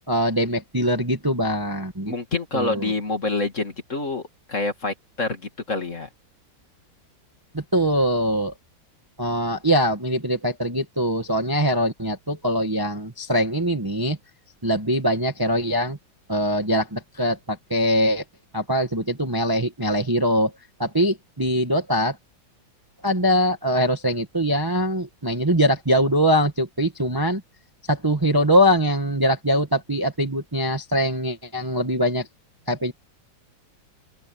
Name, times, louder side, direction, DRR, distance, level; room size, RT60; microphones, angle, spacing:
voice 1, 0.1-2.1 2.5-2.9 7.5-8.5 9.2-14.2 14.6-16.0 16.3-18.2 18.5-20.5 20.8-22.2 23.0-27.4 27.9-32.3 32.7-32.9, equal, 15° right, 1.3 m, -22 dB
voice 2, 2.1-6.1, left 3 dB, 40° left, 2.8 m, -27 dB
open air
omnidirectional pair, 2.1 m